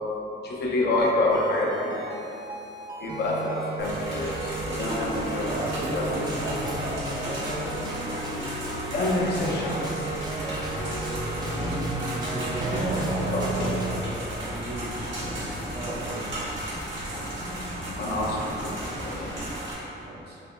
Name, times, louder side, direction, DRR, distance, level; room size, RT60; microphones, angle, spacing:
voice 1, 0.4-2.2 3.0-5.5 5.9-6.1 8.9-9.9 13.3-13.4 18.0-19.3, left 2 dB, 55° left, -3 dB, 0.5 m, -27 dB
sound 1, 1.0-13.9, right 2 dB, 20° right, 0.3 m, -34 dB
sound 2, 3.8-19.7, right 1 dB, 70° right, 1.1 m, -36 dB
sound 3, 4.1-19.5, left 1 dB, 80° left, 1.4 m, -36 dB
voice 2, 5.5-7.7 11.0-11.9 12.3-16.5 19.6-20.4, right 1 dB, 55° right, -4 dB, 0.6 m, -35 dB
4.7 x 2.9 x 2.2 m, 3.0 s
wide cardioid pair, 140°, 20 cm